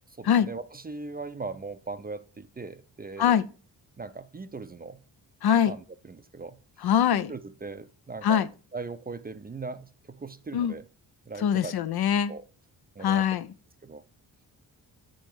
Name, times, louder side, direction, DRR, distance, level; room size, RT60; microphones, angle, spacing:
voice 1, 0.2-3.4 4.0-5.0 5.7-6.6 7.1-8.4 8.7-10.8 11.3-11.7 12.3-12.4 13.0-13.4 13.8-14.0, right 3 dB, 20° right, 0.5 m, -39 dB
voice 2, 5.4-5.7 6.8-7.3 8.2-8.5 10.5-10.7 11.4-12.3 13.0-13.5, left 9 dB, 60° left, 0.5 m, -23 dB
7.2 x 4.3 x 4.5 m
supercardioid pair, 50°, 45 cm